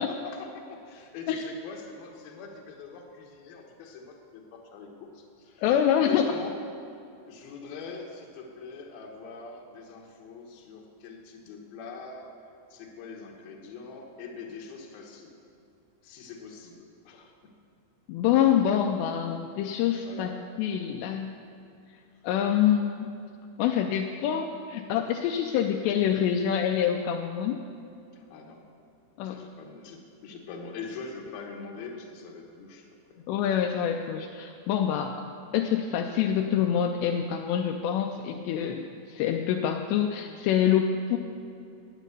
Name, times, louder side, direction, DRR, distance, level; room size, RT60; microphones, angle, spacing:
voice 1, 0.0-5.6 6.0-6.6 7.3-12.3 12.7-15.4 16.0-17.3 20.0-20.4 28.1-28.7 29.2-32.9, left 4 dB, 65° left, 1 dB, 2.7 m, -43 dB
voice 2, 5.6-6.3 18.1-20.3 20.6-21.3 22.2-23.1 23.6-27.6 29.2-29.4 33.3-35.1 35.5-41.2, left 9 dB, 85° left, 3 dB, 2.5 m, -26 dB
9.2 x 9.1 x 8.2 m, 2.5 s
omnidirectional pair, 5.4 m